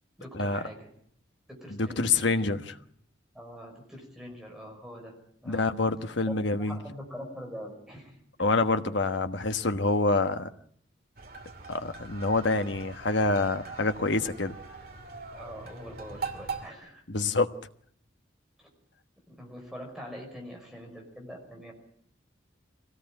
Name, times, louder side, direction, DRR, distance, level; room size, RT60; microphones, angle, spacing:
voice 1, 0.2-0.9 1.5-2.6 3.3-5.1 5.4-5.7 6.6-8.2 15.3-17.0 18.6-18.7 19.3-21.7, equal, ahead, 5.4 m, -44 dB
voice 2, 1.7-2.7 5.5-6.8 8.4-10.5 11.7-14.5 17.1-17.5, left 3 dB, 70° left, 1.3 m, -26 dB
sound 1, 11.2-16.7, right 4 dB, 50° right, 2.5 m, -41 dB
24.0 x 18.0 x 8.9 m
head